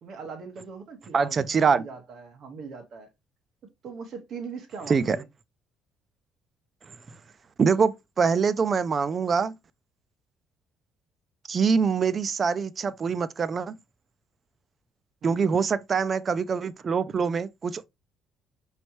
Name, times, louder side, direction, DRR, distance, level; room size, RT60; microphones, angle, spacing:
voice 1, 0.0-3.1 3.8-5.3 15.2-15.6, right 5 dB, 50° right, 1.3 m, -40 dB
voice 2, 1.1-1.8 4.9-5.2 7.6-9.5 11.5-13.8 15.2-17.8, right 5 dB, 30° right, 0.3 m, -24 dB
5.2 x 3.2 x 2.9 m
cardioid pair, 150°, 0 cm